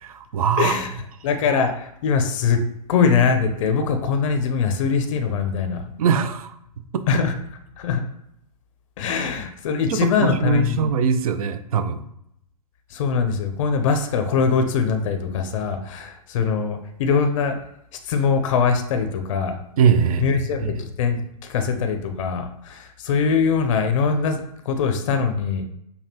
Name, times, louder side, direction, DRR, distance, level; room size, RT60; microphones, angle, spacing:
voice 1, 0.0-0.8 6.0-6.5 6.9-7.0 9.9-12.0 19.8-20.8, right 7 dB, 65° right, 10 dB, 0.5 m, -22 dB
voice 2, 0.6-0.9 1.2-2.6 2.9-5.8 7.1-7.3 7.8-8.0 9.0-10.9 12.9-17.6 18.1-19.6 20.2-25.6, left 5 dB, 55° left, 6 dB, 0.5 m, -22 dB
5.3 x 2.2 x 2.8 m, 0.76 s
hypercardioid pair, 125°, 20 cm